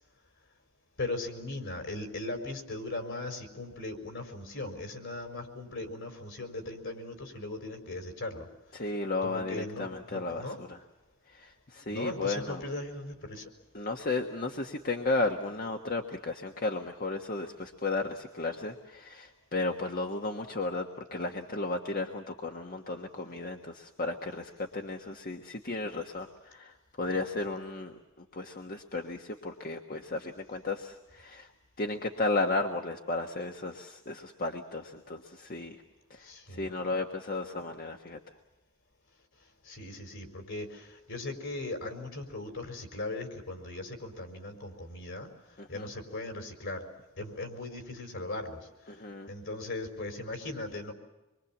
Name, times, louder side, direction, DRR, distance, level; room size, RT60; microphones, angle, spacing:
voice 1, 1.0-8.5 9.2-10.6 11.9-13.5 36.2-36.7 39.6-45.3 45.7-46.9 47.2-48.7 49.3-50.9, left 2 dB, 60° left, 6 dB, 4.6 m, -38 dB
voice 2, 8.7-10.8 11.3-12.6 13.7-31.5 31.8-35.8 36.1-38.2 45.6-45.9 48.9-49.3, left 3 dB, 40° left, 4 dB, 1.4 m, -34 dB
26.0 x 23.5 x 7.3 m, 1.0 s
head